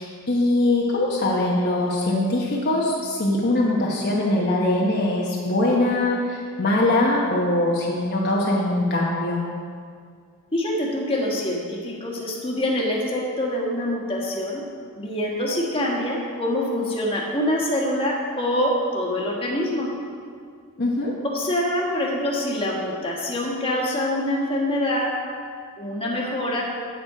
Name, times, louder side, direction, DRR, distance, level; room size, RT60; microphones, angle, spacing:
voice 1, 0.0-9.4 20.8-21.2, left 2 dB, 50° left, -3 dB, 1.0 m, -22 dB
voice 2, 10.5-14.6 15.0-19.9 21.2-25.2 25.8-26.6, left 1 dB, 25° left, -3 dB, 1.6 m, -25 dB
8.9 x 8.2 x 5.0 m, 2.1 s
head